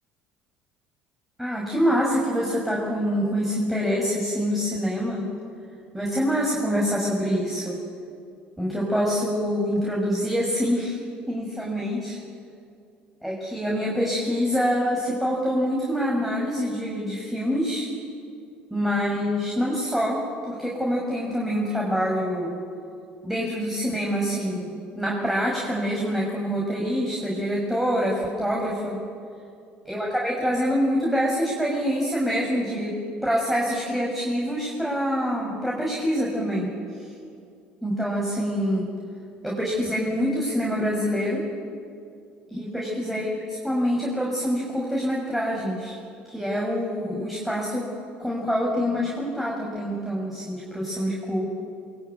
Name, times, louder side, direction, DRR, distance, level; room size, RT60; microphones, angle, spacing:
voice 1, 1.4-5.3 5.9-7.8 8.6-11.0 11.3-12.2 13.2-17.9 18.7-22.5 23.2-24.7 24.9-29.0 29.9-32.9 33.2-36.7 37.8-38.9 39.4-41.5 42.5-46.0 46.3-47.9 48.2-51.4, equal, 5° right, -3 dB, 6.2 m, -25 dB
23.0 x 20.0 x 9.5 m, 2.4 s
hypercardioid pair, 70°, 5 cm